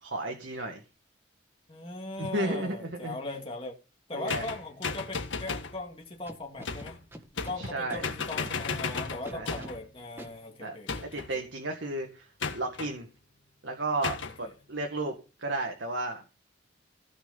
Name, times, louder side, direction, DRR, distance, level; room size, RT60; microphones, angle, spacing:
voice 1, 0.0-0.8 2.2-3.2 4.1-4.5 7.6-8.1 9.3-9.7 10.6-10.8 11.0-13.1 13.6-15.1 15.4-16.3, right 2 dB, 70° right, 2.0 m, -33 dB
voice 2, 1.7-3.7 4.1-7.0 7.4-11.1 14.4-14.5, left 2 dB, 30° left, 2.3 m, -39 dB
sound 1, 4.3-5.8 6.6-7.0 7.4-7.8 8.0-9.8 10.9-11.3 12.4-12.9 14.0-14.4, left 4 dB, 75° left, 1.7 m, -34 dB
Scratching (performance technique), 6.3-7.6 7.9-8.0 8.4-9.7 10.2-10.3, equal, 10° right, 1.9 m, -44 dB
16.5 x 6.2 x 5.4 m
head